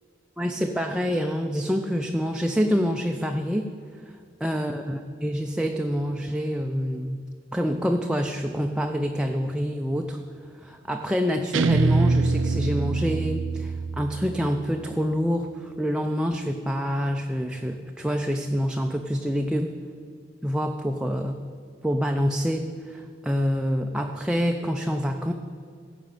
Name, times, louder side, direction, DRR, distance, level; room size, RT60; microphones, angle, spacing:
voice 1, 0.4-3.7 4.4-7.2 7.5-10.2 10.6-19.7 20.4-21.4 21.8-25.3, equal, 5° right, 3 dB, 0.5 m, -26 dB
Guitar, 11.5-14.7, right 3 dB, 85° right, 0.5 m, -24 dB
15.5 x 5.2 x 9.0 m, 2.1 s
head